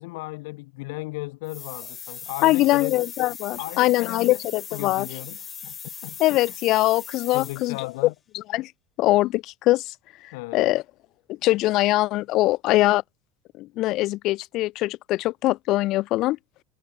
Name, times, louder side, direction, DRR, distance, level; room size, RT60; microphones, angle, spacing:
voice 1, 0.0-2.9 3.5-4.4 4.7-6.2 7.3-8.1 10.3-10.7, left 24 dB, 75° left, 2.8 m, -36 dB
sound 1, 1.5-7.9, left 7 dB, 25° left, 7.1 m, -39 dB
voice 2, 2.4-5.1 6.2-7.8 8.3-8.7 9.0-9.9 10.5-10.8 11.3-13.0 13.6-16.4, left 17 dB, 55° left, 0.7 m, -22 dB
supercardioid pair, 125°, 0 cm